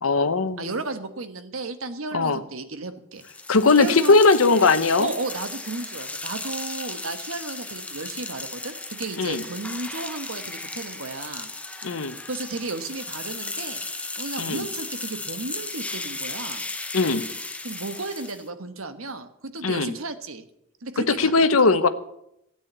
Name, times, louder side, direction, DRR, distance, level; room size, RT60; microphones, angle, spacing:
voice 1, 0.0-0.7 2.1-2.4 3.5-5.1 9.2-9.4 11.8-12.2 14.4-14.7 16.9-17.2 19.6-19.9 21.0-21.9, left 3 dB, 80° left, 11 dB, 1.0 m, -19 dB
voice 2, 0.6-3.2 3.7-4.2 5.0-11.5 12.3-13.8 14.2-16.7 17.6-20.4 20.8-21.3, right 3 dB, 75° right, 9 dB, 1.3 m, -34 dB
sound 1, 3.2-18.5, left 2 dB, 5° left, 0.7 m, -35 dB
13.0 x 8.9 x 8.0 m, 0.78 s
head